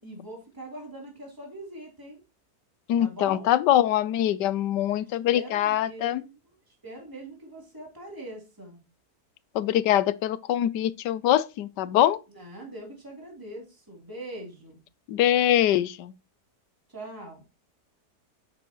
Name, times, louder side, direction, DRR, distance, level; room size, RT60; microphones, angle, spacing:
voice 1, 0.0-2.2 3.0-3.5 4.9-8.8 12.3-14.8 16.9-17.4, right 1 dB, 10° right, 3.3 m, -42 dB
voice 2, 2.9-6.2 9.5-12.2 15.1-16.1, left 12 dB, 90° left, 1.3 m, -23 dB
11.0 x 8.3 x 3.0 m
omnidirectional pair, 1.8 m